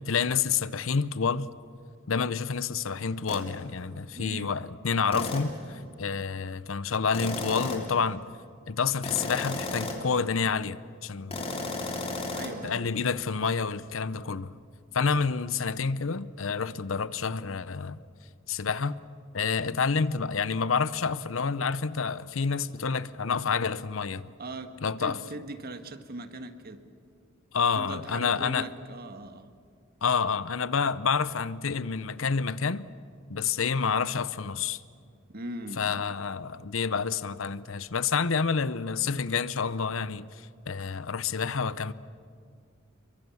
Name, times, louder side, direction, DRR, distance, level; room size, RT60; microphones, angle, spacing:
voice 1, 0.1-1.5 2.1-8.3 8.7-11.4 12.6-14.5 14.9-18.0 18.5-19.0 19.3-24.3 24.8-25.2 27.5-28.7 30.0-32.9 33.3-34.8 35.8-41.9, left 5 dB, 70° left, 0.7 m, -28 dB
sound 1, 3.3-3.5 5.1-5.6 7.1-8.0 9.0-10.2 11.3-12.5, left 2 dB, 30° left, 3.1 m, -34 dB
voice 2, 4.1-4.5 12.3-12.9 24.4-26.8 27.7-29.5 35.3-35.9, right 2 dB, 50° right, 1.6 m, -40 dB
29.0 x 23.5 x 7.1 m
head